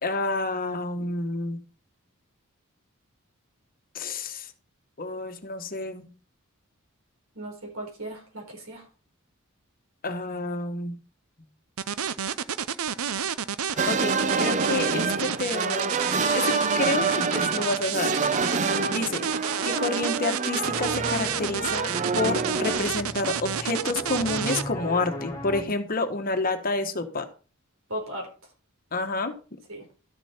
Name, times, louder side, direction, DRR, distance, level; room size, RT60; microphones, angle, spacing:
voice 1, 0.0-1.6 3.9-4.5 5.0-6.1 10.0-11.0 13.7-16.0 16.3-18.2 18.9-19.3 19.6-21.9 22.1-27.3 28.9-29.6, left 2 dB, 45° left, 7 dB, 1.3 m, -29 dB
voice 2, 7.4-8.8 27.9-28.3 29.7-29.8, right 1 dB, 70° right, 2 dB, 4.2 m, -36 dB
sound 1, 11.8-24.6, right 8 dB, 85° right, 0.7 m, -30 dB
sound 2, 13.8-22.8, right 4 dB, 35° right, 0.6 m, -27 dB
sound 3, 20.6-25.6, left 1 dB, 20° left, 3.0 m, -37 dB
12.5 x 7.1 x 4.4 m, 0.36 s
head